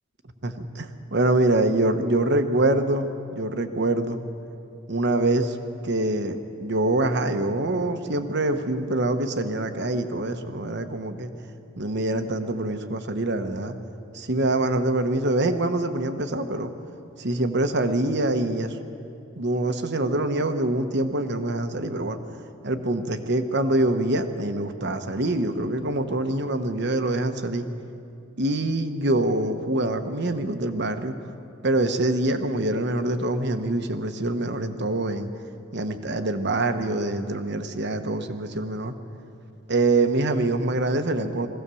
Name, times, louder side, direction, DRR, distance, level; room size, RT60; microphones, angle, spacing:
voice 1, 0.4-4.2 4.9-5.6 5.8-11.3 11.8-13.7 14.1-16.7 17.2-18.8 19.4-22.2 22.6-27.6 28.4-31.1 31.6-35.3 35.7-38.9 39.7-41.5, right 2 dB, 60° right, 7 dB, 1.2 m, -25 dB
22.5 x 16.5 x 7.0 m, 2.6 s
head